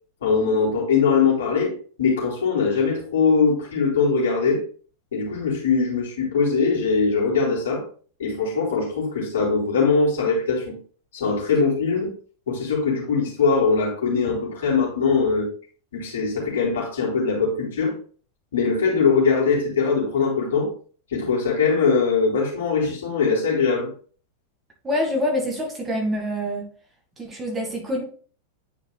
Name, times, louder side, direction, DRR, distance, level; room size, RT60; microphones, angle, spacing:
voice 1, 0.2-4.6 5.1-7.8 8.2-10.7 11.1-12.1 12.5-15.5 15.9-18.0 18.5-20.7 21.1-23.9, left 5 dB, 60° left, -4 dB, 3.3 m, -21 dB
voice 2, 24.8-26.6 27.2-28.0, left 1 dB, 15° right, 1 dB, 1.9 m, -26 dB
9.7 x 5.1 x 2.3 m, 0.42 s
figure-of-eight pair, 90°, 0 cm